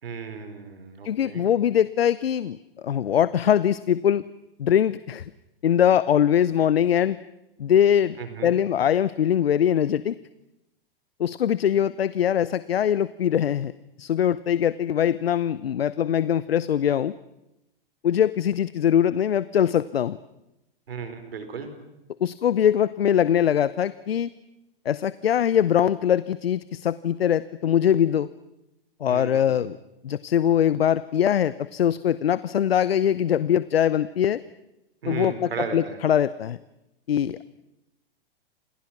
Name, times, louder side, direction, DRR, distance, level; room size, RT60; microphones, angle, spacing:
voice 1, 0.0-1.4 8.2-8.5 20.9-21.7 29.1-29.6 35.0-36.0, right 6 dB, 75° right, 8 dB, 4.6 m, -35 dB
voice 2, 1.0-4.2 4.6-5.3 5.6-7.2 7.6-8.2 8.4-10.2 11.2-13.7 14.0-17.1 18.0-20.2 22.2-24.3 24.8-28.3 29.0-29.8 30.0-34.4 35.1-36.6 37.1-37.4, left 9 dB, 80° left, 17 dB, 0.9 m, -22 dB
30.0 x 28.5 x 6.0 m, 0.91 s
hypercardioid pair, 115°, 30 cm